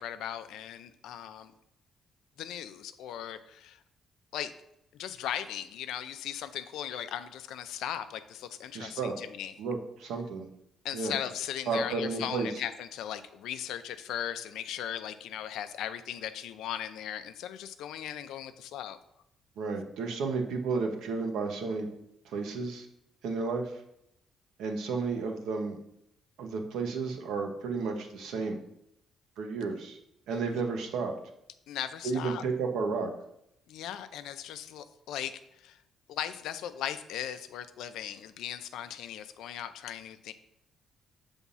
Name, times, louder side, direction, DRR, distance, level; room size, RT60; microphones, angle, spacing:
voice 1, 0.0-1.5 2.4-3.8 4.3-4.5 4.9-9.5 10.8-19.0 31.7-32.4 33.7-35.8 36.1-40.3, left 10 dB, 85° left, 11 dB, 0.5 m, -38 dB
voice 2, 8.7-9.1 9.6-10.5 10.9-11.1 11.7-12.5 19.6-21.9 22.2-22.9 23.2-23.8 24.6-25.8 26.4-28.6 29.4-30.0 30.3-31.1 32.0-33.1, right 4 dB, 85° right, 4 dB, 1.1 m, -32 dB
7.2 x 3.6 x 5.5 m, 0.79 s
cardioid pair, 90°, 0 cm